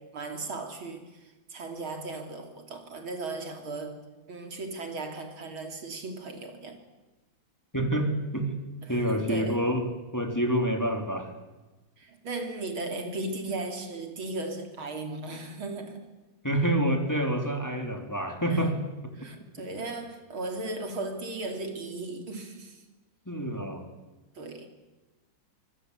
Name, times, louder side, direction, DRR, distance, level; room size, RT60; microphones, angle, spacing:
voice 1, 0.0-6.8 8.8-9.6 12.0-16.0 18.5-18.8 19.2-22.8 24.4-24.7, right 2 dB, 75° right, 3.9 m, -37 dB
voice 2, 7.7-8.5 8.9-9.9 10.1-11.3 16.4-18.7 23.3-23.9, right 1 dB, 10° left, 3.4 m, -27 dB
25.0 x 24.5 x 8.2 m
omnidirectional pair, 2.3 m